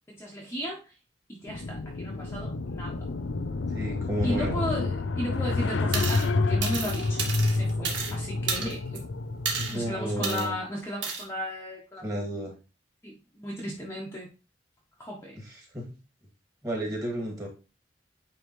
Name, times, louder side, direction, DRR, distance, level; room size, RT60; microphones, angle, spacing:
voice 1, 0.1-0.9 1.3-3.1 4.2-9.1 9.7-12.0 13.0-14.3 15.0-15.4, equal, 15° left, -3 dB, 1.2 m, -35 dB
sound 1, 1.5-10.3, left 3 dB, 90° left, 0.5 m, -29 dB
voice 2, 3.7-4.6 9.6-10.6 12.0-12.5 15.7-15.8 16.6-17.5, right 1 dB, 20° right, -2 dB, 2.3 m, -32 dB
sound 2, 5.9-6.3 6.6-8.1 8.5-9.0 9.4-9.8 10.2-10.5 11.0-11.2, right 5 dB, 85° right, 1.8 m, -31 dB
9.1 x 3.3 x 3.2 m, 0.32 s
head